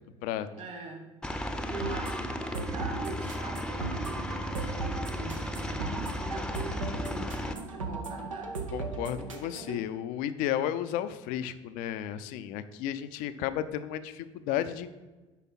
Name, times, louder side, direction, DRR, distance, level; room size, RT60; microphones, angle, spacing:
voice 1, 0.5-8.6, right 3 dB, 50° right, 1 dB, 2.3 m, -43 dB
Aircraft, 1.2-7.5, left 1 dB, 5° left, 0.7 m, -35 dB
sound 1, 1.8-9.8, right 3 dB, 85° right, 0.7 m, -37 dB
voice 2, 8.7-15.0, left 11 dB, 55° left, 13 dB, 0.5 m, -33 dB
8.1 x 5.3 x 4.1 m, 1.2 s
figure-of-eight pair, 60°, 16 cm